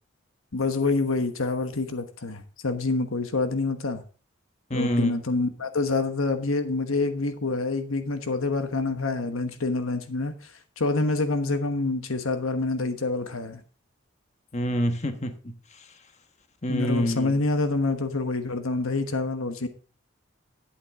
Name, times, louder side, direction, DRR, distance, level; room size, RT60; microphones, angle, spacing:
voice 1, 0.5-4.0 4.7-13.6 16.7-19.7, left 3 dB, 85° left, 1.2 m, -27 dB
voice 2, 4.7-5.1 14.5-15.5 16.6-17.3, equal, 35° left, 1.2 m, -26 dB
11.0 x 8.6 x 3.7 m
head